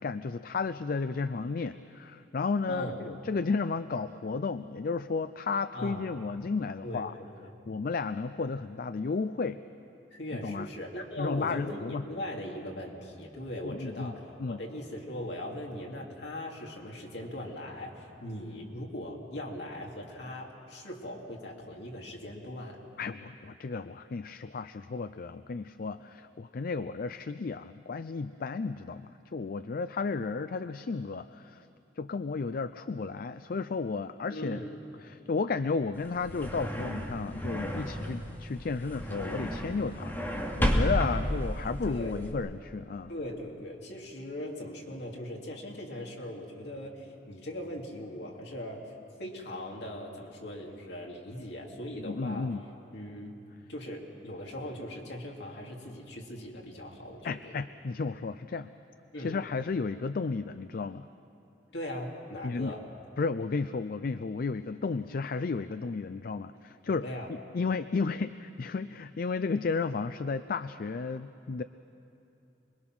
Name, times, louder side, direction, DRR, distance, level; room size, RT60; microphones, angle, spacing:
voice 1, 0.0-7.1 7.7-9.6 10.4-10.7 11.2-12.0 13.6-14.6 23.0-31.6 32.0-34.6 35.0-43.1 52.1-52.6 57.2-58.7 59.2-61.1 62.4-62.7 63.2-71.6, left 4 dB, 55° left, 12 dB, 0.4 m, -33 dB
voice 2, 2.7-3.0 5.7-6.0 6.8-7.5 10.1-22.8 34.3-34.8 41.0-42.2 43.1-48.8 49.2-52.5 52.9-53.4 53.7-57.5 59.1-59.4 61.7-62.8 66.9-67.3, left 1 dB, 70° left, -1 dB, 2.9 m, -40 dB
sound 1, 35.9-42.3, equal, 10° left, 2.4 m, -32 dB
26.5 x 21.5 x 6.1 m, 2.9 s
head